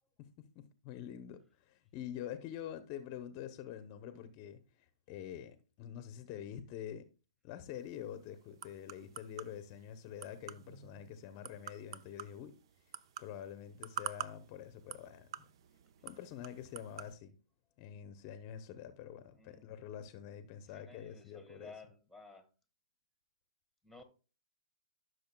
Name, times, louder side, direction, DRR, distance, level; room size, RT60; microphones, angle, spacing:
voice 1, 0.2-7.1 7.4-12.5 13.2-15.4 16.0-17.3 17.8-21.7, left 10 dB, 35° left, 0.8 m, -46 dB
sound 1, 7.7-17.1, right 9 dB, 55° right, 0.6 m, -49 dB
voice 2, 19.4-19.7 20.7-22.5 23.8-24.0, left 3 dB, 5° right, 1.5 m, -55 dB
15.0 x 6.4 x 2.2 m
hypercardioid pair, 140°, 3 cm